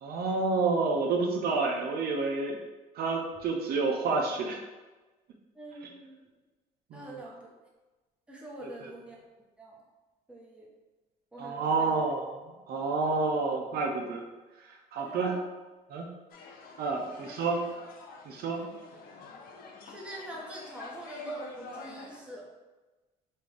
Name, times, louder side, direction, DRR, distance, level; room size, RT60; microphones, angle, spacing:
voice 1, 0.0-2.6 2.9-4.6 6.9-7.2 8.6-8.9 11.4-12.4 12.7-14.2 14.6-15.4 15.9-16.1 16.8-17.6 18.3-18.6, right 4 dB, 65° right, 1 dB, 0.6 m, -29 dB
voice 2, 5.5-6.2 6.9-7.4 8.3-9.2 9.6-9.8 10.3-10.7 11.3-11.9 15.0-15.4 17.0-17.3 18.4-18.7 19.8-22.5, right 2 dB, 5° right, -4 dB, 1.1 m, -44 dB
sound 1, 16.3-22.2, left 4 dB, 60° left, 0.7 m, -47 dB
5.3 x 2.5 x 3.4 m, 1.2 s
cardioid pair, 110°, 17 cm